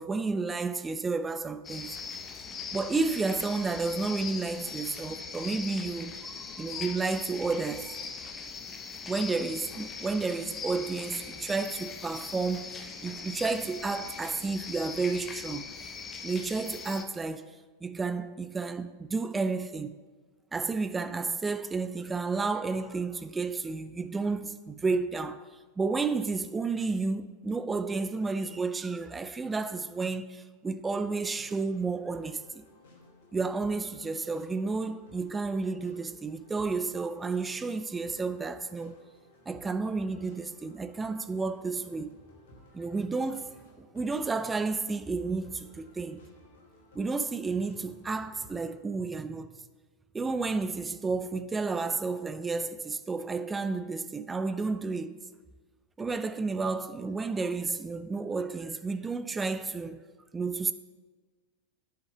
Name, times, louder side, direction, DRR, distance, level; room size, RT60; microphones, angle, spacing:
voice 1, 0.0-2.0 2.7-6.2 6.6-8.0 9.1-15.6 16.2-17.5 17.8-19.9 20.5-25.5 25.8-32.6 33.3-39.0 39.5-42.1 42.7-46.2 46.9-49.5 50.1-55.2 56.0-60.0 60.3-60.7, right 4 dB, 15° right, 0.4 m, -31 dB
sound 1, 1.6-17.0, left 5 dB, 20° left, 1.0 m, -41 dB
sound 2, 30.8-48.7, left 1 dB, 55° left, 2.9 m, -57 dB
9.2 x 5.8 x 8.3 m
figure-of-eight pair, 90°, 0 cm